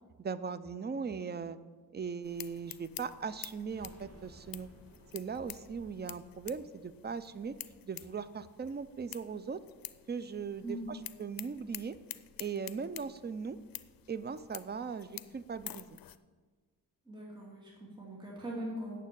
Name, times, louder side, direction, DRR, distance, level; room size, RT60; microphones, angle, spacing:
voice 1, 0.2-1.6 1.9-4.7 5.1-7.6 7.8-9.6 10.1-12.0 12.4-13.6 14.1-16.0, right 5 dB, 30° right, 14 dB, 0.5 m, -39 dB
sound 1, 2.2-16.2, left 12 dB, 75° left, 0.6 m, -49 dB
sound 2, 3.6-9.3 9.6-9.7 10.0-10.1, right 1 dB, 45° right, 1.7 m, -60 dB
voice 2, 17.1-19.0, right 1 dB, 15° right, -5 dB, 2.6 m, -41 dB
9.0 x 7.3 x 8.4 m, 1.4 s
cardioid pair, 95°, 35 cm